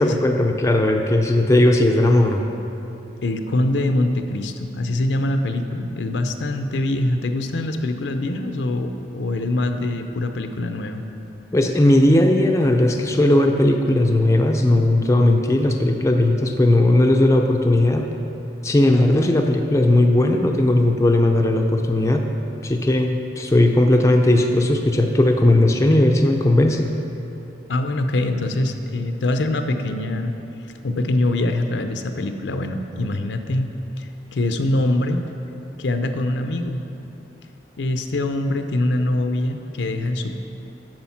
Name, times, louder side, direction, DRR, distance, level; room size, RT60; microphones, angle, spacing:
voice 1, 0.0-2.4 11.5-18.1 18.6-22.3 22.6-26.9, left 1 dB, 15° left, 3 dB, 0.4 m, -17 dB
voice 2, 3.2-11.0 27.7-30.3 30.8-33.7 34.0-35.2 35.8-36.8 37.8-40.4, left 1 dB, 80° left, 7 dB, 0.6 m, -23 dB
8.7 x 6.3 x 5.7 m, 2.8 s
head